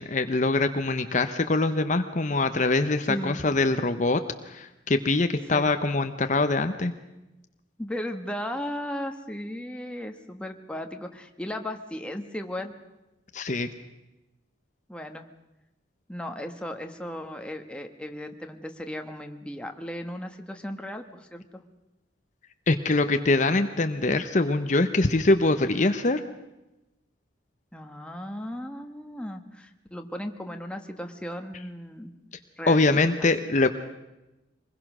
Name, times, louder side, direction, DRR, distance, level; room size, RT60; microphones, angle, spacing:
voice 1, 0.0-6.9 13.3-13.7 22.7-26.2 32.7-33.7, left 2 dB, 40° left, 8 dB, 0.9 m, -23 dB
voice 2, 7.8-12.7 14.9-15.2 16.1-21.4 27.7-32.1 32.6-33.3, left 1 dB, 5° left, 5 dB, 1.4 m, -36 dB
25.0 x 21.0 x 6.2 m, 0.99 s
head